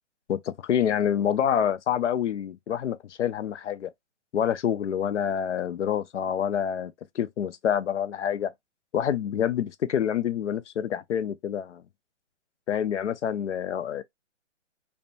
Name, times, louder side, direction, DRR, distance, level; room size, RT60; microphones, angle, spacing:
voice 1, 0.3-3.9 4.3-8.5 8.9-11.8 12.7-14.0, left 9 dB, 70° left, 0.5 m, -27 dB
2.6 x 2.2 x 2.6 m
hypercardioid pair, 175°, 37 cm